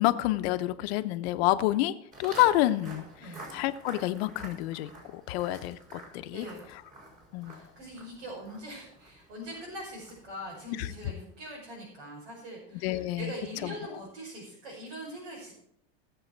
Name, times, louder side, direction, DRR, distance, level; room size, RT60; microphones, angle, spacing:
voice 1, 0.0-6.5 6.7-6.8 7.3-7.6 10.7-10.9 12.8-13.3 13.6-14.0, left 15 dB, 70° left, 11 dB, 0.9 m, -28 dB
Walk footsteps, 2.1-11.3, right 1 dB, 25° right, 5.0 m, -49 dB
voice 2, 3.2-3.5 6.3-6.6 7.4-15.5, equal, 80° right, -4 dB, 5.6 m, -42 dB
18.0 x 7.2 x 4.6 m, 0.74 s
supercardioid pair, 135°, 32 cm